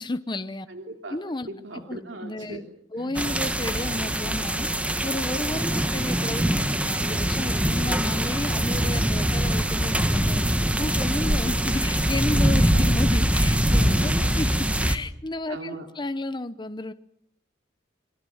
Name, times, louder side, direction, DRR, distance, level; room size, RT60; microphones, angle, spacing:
voice 1, 0.0-0.7 1.1-1.5 1.9-2.6 2.9-4.7 5.0-10.4 10.8-16.9, left 2 dB, 25° left, 1.0 m, -32 dB
voice 2, 0.7-1.2 1.5-2.6 2.9-3.1 12.7-12.8 13.7-14.3 15.5-15.9, right 2 dB, 70° right, 3.1 m, -39 dB
sound 1, 3.1-15.0, equal, 5° right, 1.5 m, -23 dB
28.0 x 23.5 x 7.3 m
head